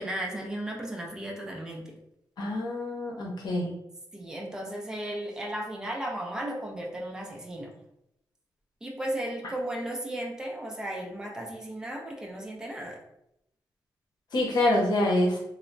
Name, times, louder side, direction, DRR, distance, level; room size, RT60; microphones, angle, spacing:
voice 1, 0.0-2.0 4.1-7.8 8.8-13.0, right 1 dB, 10° right, 0 dB, 0.4 m, -35 dB
voice 2, 2.4-3.7 14.3-15.4, left 1 dB, 70° left, -1 dB, 0.8 m, -26 dB
3.2 x 2.0 x 2.5 m, 0.80 s
wide cardioid pair, 145°, 7 cm